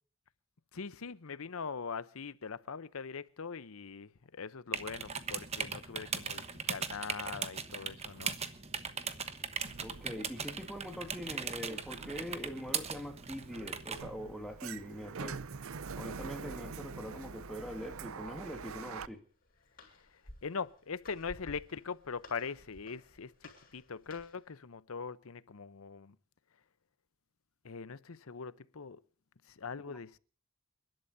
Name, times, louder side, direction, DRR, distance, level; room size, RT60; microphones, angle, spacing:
voice 1, 0.7-8.4 20.4-26.2 27.6-29.0 29.5-30.2, left 5 dB, 75° left, 0.8 m, -42 dB
sound 1, 4.7-14.0, right 6 dB, 30° right, 1.1 m, -39 dB
Sliding door, 9.7-19.1, right 5 dB, 75° right, 0.6 m, -46 dB
voice 2, 9.8-15.4 16.0-19.2 29.9-30.0, equal, ahead, 2.2 m, -43 dB
Walk footsteps, 19.1-24.5, left 1 dB, 40° left, 7.4 m, -55 dB
29.0 x 12.0 x 2.7 m
head